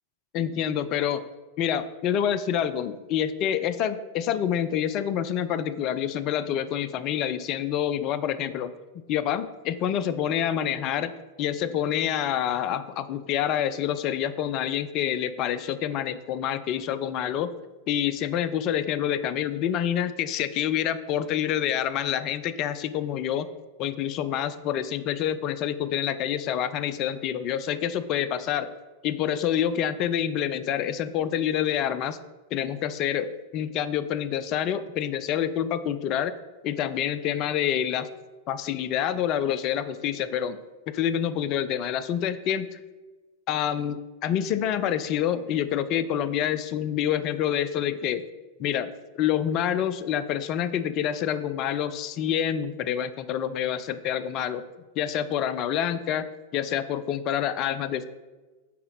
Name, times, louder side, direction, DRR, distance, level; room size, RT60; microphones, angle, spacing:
voice 1, 0.3-1.2 1.6-17.5 17.9-23.5 23.8-28.7 29.0-32.2 32.5-36.3 36.6-38.1 38.5-40.6 40.9-42.8 43.5-48.2 48.6-48.9 49.1-54.6 55.0-56.3 56.5-58.1, left 9 dB, 40° left, 14 dB, 0.4 m, -27 dB
8.4 x 4.1 x 4.0 m, 1.2 s
figure-of-eight pair, 90°, 0 cm